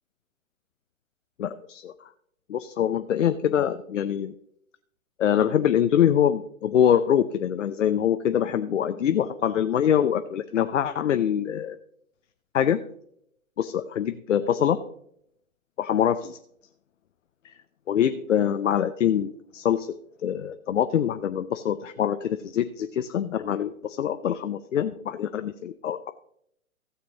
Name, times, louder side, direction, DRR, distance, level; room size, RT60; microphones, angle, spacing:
voice 1, 1.4-1.9 2.5-4.3 5.2-11.8 12.5-12.8 13.6-14.8 15.8-16.4 17.4-17.5 17.9-19.9 20.2-26.1, left 9 dB, 60° left, 9 dB, 0.6 m, -24 dB
15.0 x 6.8 x 3.7 m, 0.70 s
figure-of-eight pair, 125°, 41 cm